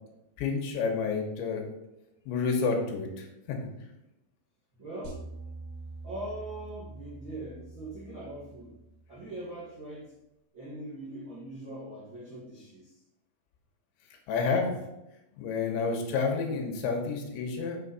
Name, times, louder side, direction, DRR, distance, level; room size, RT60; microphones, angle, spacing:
voice 1, 0.4-1.7 2.3-3.6 14.3-14.7 15.4-17.8, left 4 dB, 80° left, 2 dB, 3.4 m, -29 dB
voice 2, 4.7-5.3 6.0-8.7 9.1-10.1 10.5-13.0, right 1 dB, 85° right, -8 dB, 1.0 m, -41 dB
sound 1, 5.0-9.4, right 3 dB, 60° right, 4.8 m, -45 dB
7.1 x 7.0 x 4.1 m, 0.92 s
omnidirectional pair, 5.4 m